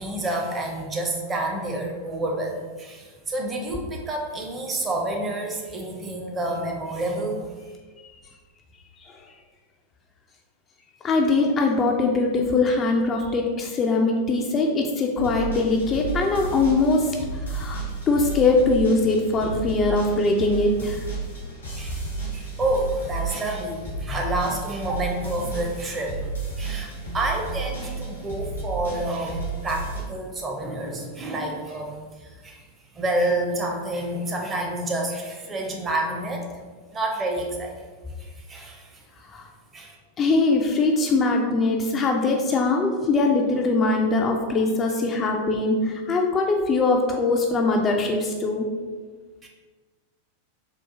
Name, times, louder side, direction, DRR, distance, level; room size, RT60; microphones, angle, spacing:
voice 1, 0.0-7.5 21.7-22.0 22.3-26.1 26.6-32.6 32.9-36.5 36.9-37.7 38.2-39.0 39.7-40.0 49.4-49.5, right 1 dB, 20° right, 0 dB, 0.6 m, -29 dB
voice 2, 11.0-17.2 17.5-21.0 39.3-39.5 40.2-48.7, left 3 dB, 25° left, 1 dB, 0.3 m, -22 dB
sound 1, 15.1-30.0, right 3 dB, 75° left, 1.1 m, -32 dB
3.9 x 2.3 x 2.6 m, 1.4 s
figure-of-eight pair, 90°, 0 cm